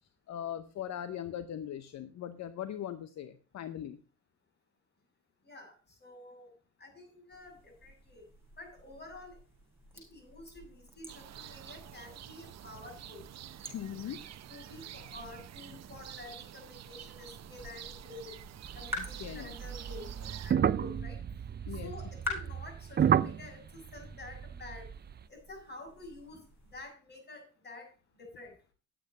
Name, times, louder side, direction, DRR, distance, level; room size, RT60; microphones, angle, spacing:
voice 1, 0.3-4.0 13.7-14.2 19.2-19.5 21.7-21.9, left 10 dB, 65° left, 12 dB, 0.8 m, -40 dB
voice 2, 5.4-6.5 6.8-8.2 8.6-9.4 9.9-13.3 14.5-18.5 18.7-28.6, left 2 dB, 35° left, 2 dB, 6.7 m, -50 dB
sound 1, 7.3-26.9, left 2 dB, 10° right, 6.0 m, -48 dB
sound 2, 11.1-20.5, right 11 dB, 60° right, 0.8 m, -48 dB
sound 3, 18.6-25.2, right 8 dB, 35° right, 0.5 m, -32 dB
10.5 x 8.1 x 5.3 m, 0.36 s
cardioid pair, 90°, 30 cm